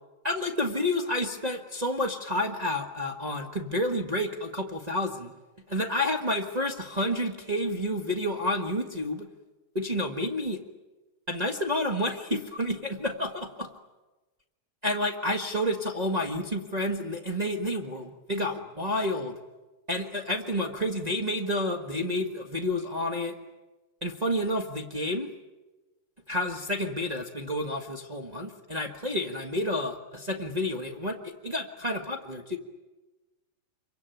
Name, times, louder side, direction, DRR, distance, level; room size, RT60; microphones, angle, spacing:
voice 1, 0.2-5.3 5.7-9.3 9.7-10.6 11.3-13.7 14.8-19.4 19.9-23.4 24.0-25.3 26.3-32.6, left 1 dB, 70° right, 1 dB, 0.4 m, -30 dB
26.5 x 23.5 x 9.2 m, 1.2 s
omnidirectional pair, 3.7 m